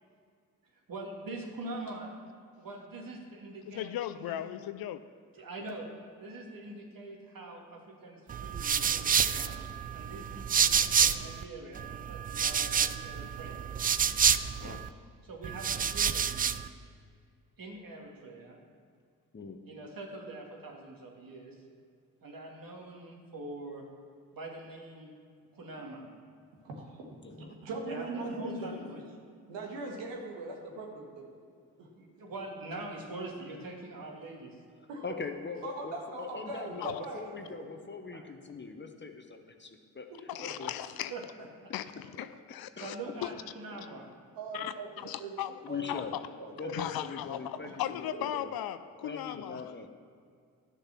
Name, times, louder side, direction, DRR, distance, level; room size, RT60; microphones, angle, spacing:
voice 1, 0.9-2.1 2.6-4.3 5.3-5.9 6.2-13.6 15.2-16.5 17.6-18.6 19.7-21.6 22.2-23.9 24.3-25.1 25.5-26.1 27.9-29.0 31.9-34.6 38.1-38.2 41.1-41.2 41.6-41.7 42.8-44.1, right 2 dB, 50° right, 0 dB, 2.4 m, -44 dB
voice 2, 3.7-5.0 36.8-37.0 40.3-41.1 41.7-43.0 43.2-43.3 44.5-45.5 45.9-46.0 46.7-49.6, left 12 dB, 55° left, 12 dB, 0.6 m, -37 dB
sound 1, 8.3-11.4 11.7-14.9 15.4-16.7, right 7 dB, 20° right, 0.4 m, -28 dB
voice 3, 26.5-28.9 29.4-31.3 31.8-32.2 34.9-35.0 35.6-37.2 37.6-37.7 40.1-40.2 43.0-43.1 44.4-45.3 45.7-45.8 46.4-46.9 47.4-47.8 48.1-48.2, right 2 dB, 70° right, 0 dB, 1.9 m, -41 dB
voice 4, 27.2-27.5 35.0-40.1 40.4-40.7 45.6-46.2 46.6-48.5 49.0-49.9, left 5 dB, 25° left, 5 dB, 1.1 m, -41 dB
11.5 x 6.6 x 6.0 m, 2.2 s
figure-of-eight pair, 40°, 45 cm